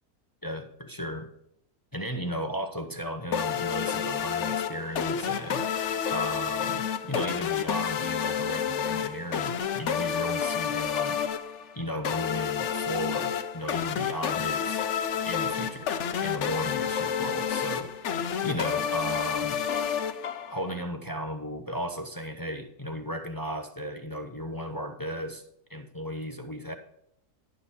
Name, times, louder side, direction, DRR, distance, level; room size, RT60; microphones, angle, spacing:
voice 1, 0.4-1.3 1.9-5.6 6.1-11.2 11.7-14.8 15.3-15.9 16.2-17.9 18.4-19.6 20.5-25.4 25.7-26.7, equal, 25° left, 5 dB, 0.5 m, -35 dB
sound 1, 3.3-20.8, left 8 dB, 60° left, 0.8 m, -30 dB
11.5 x 8.7 x 4.2 m, 0.74 s
omnidirectional pair, 1.8 m